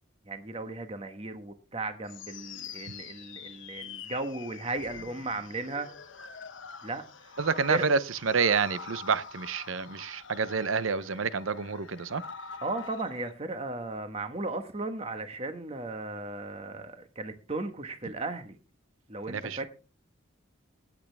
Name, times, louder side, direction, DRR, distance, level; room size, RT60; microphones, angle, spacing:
voice 1, 0.2-5.9 6.8-7.4 7.7-7.8 12.6-18.6 19.1-19.7, right 2 dB, 30° right, 1.4 m, -36 dB
sound 1, 2.1-13.3, left 5 dB, 65° left, 1.1 m, -45 dB
voice 2, 7.4-12.2 19.3-19.7, right 5 dB, 80° right, 0.7 m, -28 dB
17.0 x 8.5 x 3.4 m
head